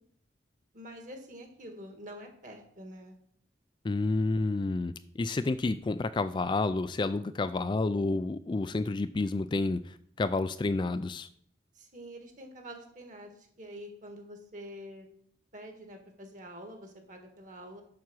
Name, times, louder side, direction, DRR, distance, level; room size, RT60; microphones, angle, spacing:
voice 1, 0.7-3.2 11.8-13.3 13.6-15.1 15.5-17.8, equal, 45° right, 4 dB, 1.8 m, -46 dB
voice 2, 3.8-4.9 5.2-9.8 10.2-11.3, left 3 dB, 25° left, 12 dB, 0.3 m, -29 dB
7.4 x 6.0 x 6.2 m, 0.65 s
head